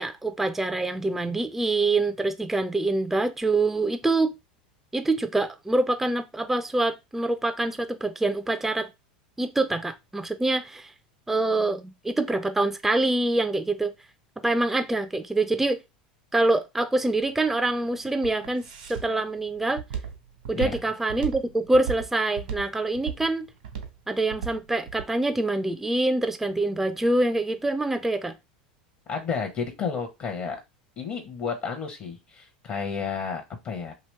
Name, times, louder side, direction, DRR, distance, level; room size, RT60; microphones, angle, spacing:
voice 1, 0.0-4.3 4.9-8.9 9.4-10.9 11.3-13.9 14.4-15.8 16.3-19.8 20.5-23.5 24.1-28.3, right 2 dB, 5° right, 0.3 m, -25 dB
Walk footsteps, 17.0-25.1, right 8 dB, 75° right, 1.0 m, -35 dB
voice 2, 29.1-30.6 31.0-33.9, left 6 dB, 40° left, 0.7 m, -31 dB
2.9 x 2.9 x 3.2 m
hypercardioid pair, 85°, 5 cm